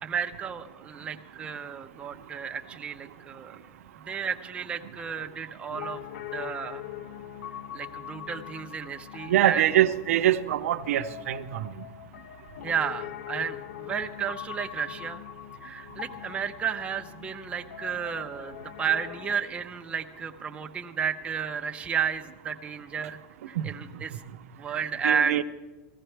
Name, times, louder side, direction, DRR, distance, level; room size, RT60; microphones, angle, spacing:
voice 1, 0.0-3.6 4.1-6.0 6.3-6.8 7.7-9.6 12.6-15.2 15.6-23.2 23.5-24.2 24.6-25.4, right 7 dB, 15° right, 4 dB, 0.7 m, -32 dB
Piano, 5.7-19.4, left 12 dB, 85° left, 0.6 m, -42 dB
voice 2, 9.3-11.7 23.6-23.7 25.0-25.4, right 12 dB, 90° right, 10 dB, 0.7 m, -24 dB
18.0 x 15.5 x 3.4 m, 1.2 s
supercardioid pair, 150°, 8 cm